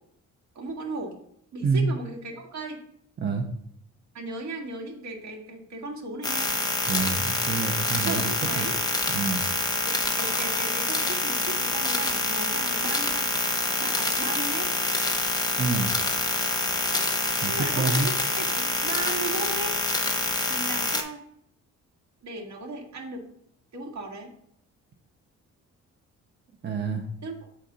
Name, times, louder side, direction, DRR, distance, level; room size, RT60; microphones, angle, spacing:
voice 1, 0.6-1.2 1.5-2.8 4.1-6.6 8.0-8.8 9.8-13.4 13.8-14.7 17.5-19.7 20.5-21.2 22.2-23.2 23.7-24.3 27.2-27.5, right 2 dB, 65° right, 1 dB, 1.7 m, -36 dB
sound 1, 6.2-21.0, left 2 dB, 15° left, 0.9 m, -26 dB
voice 2, 6.9-8.7 9.1-9.5 15.6-15.9 17.4-18.1 26.6-27.0, right 4 dB, 35° right, 2 dB, 0.8 m, -27 dB
7.5 x 4.2 x 3.9 m, 0.69 s
cardioid pair, 90°, 30 cm